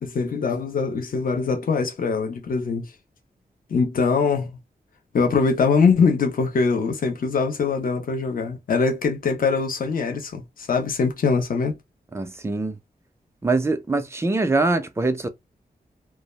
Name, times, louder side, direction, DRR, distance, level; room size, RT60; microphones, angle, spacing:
voice 1, 0.0-2.9 3.7-4.6 5.1-11.8, left 5 dB, 60° left, 0.6 m, -22 dB
voice 2, 12.1-12.8 13.4-15.3, right 3 dB, 15° right, 0.4 m, -23 dB
2.3 x 2.0 x 3.0 m
wide cardioid pair, 120°, 16 cm